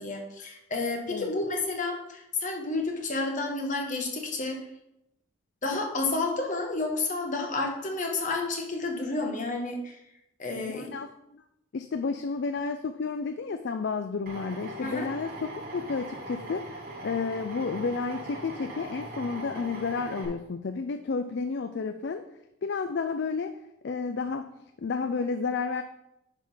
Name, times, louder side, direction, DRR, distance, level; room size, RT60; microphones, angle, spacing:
voice 1, 0.0-4.6 5.6-9.9 10.4-10.9 14.8-15.1, left 3 dB, 40° left, 2 dB, 1.3 m, -30 dB
voice 2, 10.6-11.4 11.7-15.3 15.7-22.3 22.6-23.6 23.8-24.5 24.8-25.8, left 4 dB, 55° left, 8 dB, 0.4 m, -31 dB
Drill, 14.3-20.3, right 1 dB, 50° right, 2.2 m, -40 dB
9.7 x 3.6 x 5.7 m, 0.85 s
head